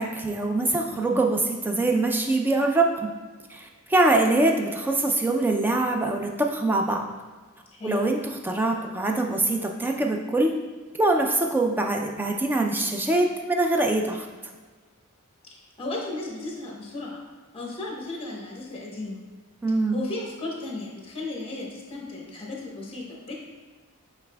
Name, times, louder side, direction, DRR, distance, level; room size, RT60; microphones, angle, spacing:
voice 1, 0.0-3.1 3.5-7.0 7.8-10.5 11.0-14.3 19.6-20.0, right 2 dB, 10° right, 2 dB, 0.3 m, -23 dB
voice 2, 0.9-1.2 7.7-8.0 15.5-17.2 17.5-19.2 19.9-23.3, left 2 dB, 25° left, -2 dB, 0.9 m, -35 dB
7.1 x 3.3 x 2.2 m, 1.3 s
head